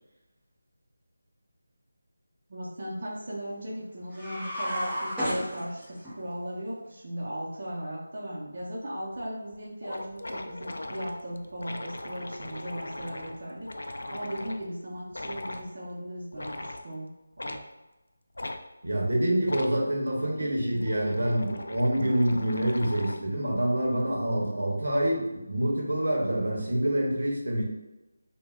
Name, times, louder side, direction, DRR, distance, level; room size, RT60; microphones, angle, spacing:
voice 1, 2.5-17.1 17.4-17.6, equal, 45° right, -6 dB, 0.6 m, -37 dB
sound 1, 4.1-6.1, equal, 5° right, 0.9 m, -32 dB
sound 2, 9.2-9.3 9.5-9.6 9.8-14.6 15.1-15.7 16.3-16.9 17.4-17.6 18.4-18.6 19.4-19.8 20.5-23.3, left 1 dB, 80° left, 0.3 m, -39 dB
voice 2, 18.8-27.6, right 1 dB, 75° right, -2 dB, 0.8 m, -26 dB
3.2 x 2.2 x 2.3 m, 1.0 s
figure-of-eight pair, 170°, 0 cm